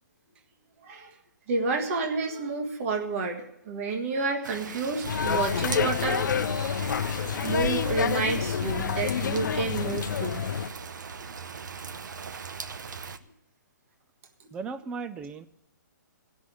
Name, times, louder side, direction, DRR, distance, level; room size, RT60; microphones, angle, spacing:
voice 1, 1.5-6.2 7.4-10.5 10.8-10.9 12.1-12.4, right 3 dB, 45° right, 3 dB, 1.6 m, -30 dB
Rain, 4.4-13.2, right 5 dB, 75° right, 0.8 m, -39 dB
sound 1, 5.0-10.7, left 7 dB, 75° left, 0.6 m, -28 dB
voice 2, 14.5-15.5, right 4 dB, 10° right, 12 dB, 0.4 m, -36 dB
17.0 x 6.3 x 8.5 m, 0.83 s
hypercardioid pair, 155°, 10 cm